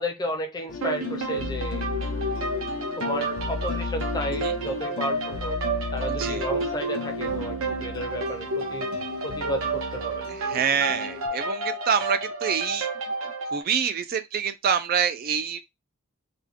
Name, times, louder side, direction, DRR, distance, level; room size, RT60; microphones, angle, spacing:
voice 1, 0.0-1.8 3.0-5.6 5.9-8.9 9.2-10.3, equal, 20° left, 0.6 m, -33 dB
sound 1, 0.7-11.3, left 4 dB, 75° left, 0.6 m, -35 dB
sound 2, 0.8-13.6, right 3 dB, 85° right, 0.9 m, -31 dB
voice 2, 6.1-6.5 10.3-12.9 13.2-15.6, right 7 dB, 45° right, 0.3 m, -27 dB
3.3 x 2.2 x 3.5 m
head